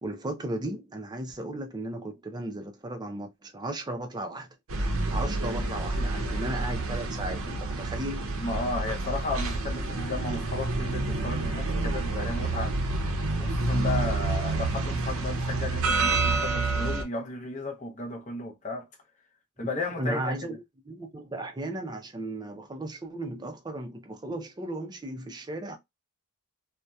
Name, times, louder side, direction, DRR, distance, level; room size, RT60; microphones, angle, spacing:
voice 1, 0.0-4.5 5.1-8.3 19.8-20.6 20.9-25.8, right 1 dB, 20° right, 0.4 m, -35 dB
sound 1, 4.7-17.0, right 2 dB, 65° right, 0.6 m, -28 dB
voice 2, 5.9-6.4 8.4-12.8 13.4-18.9 19.6-20.3, left 2 dB, 35° left, 0.6 m, -34 dB
2.7 x 2.1 x 2.2 m
head